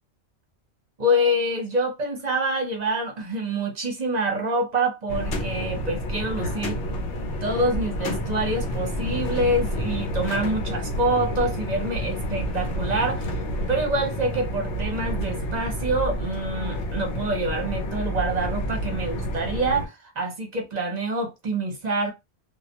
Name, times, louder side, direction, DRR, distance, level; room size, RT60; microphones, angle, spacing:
voice 1, 1.0-6.8 7.4-13.3 13.7-22.1, right 1 dB, 45° right, 0.7 m, -26 dB
sound 1, 5.1-19.9, equal, 90° left, 1.0 m, -29 dB
2.3 x 2.1 x 2.8 m
omnidirectional pair, 1.1 m